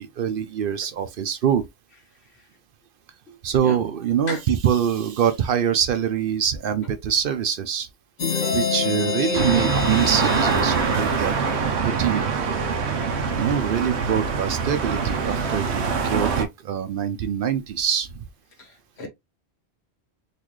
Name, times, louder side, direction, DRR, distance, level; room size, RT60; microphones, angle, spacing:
voice 1, 0.0-1.7 3.4-7.9 8.5-11.3 11.8-12.3 13.2-18.2, right 8 dB, 65° right, 0.7 m, -24 dB
voice 2, 3.3-3.4 3.6-3.8 4.3-4.4 18.6-18.7 19.0-19.1, left 3 dB, 80° left, 1.6 m, -32 dB
sound 1, 8.2-11.8, left 5 dB, 45° left, 0.7 m, -27 dB
sound 2, 9.3-16.4, right 5 dB, 90° right, 1.0 m, -24 dB
4.0 x 2.4 x 3.0 m
omnidirectional pair, 1.1 m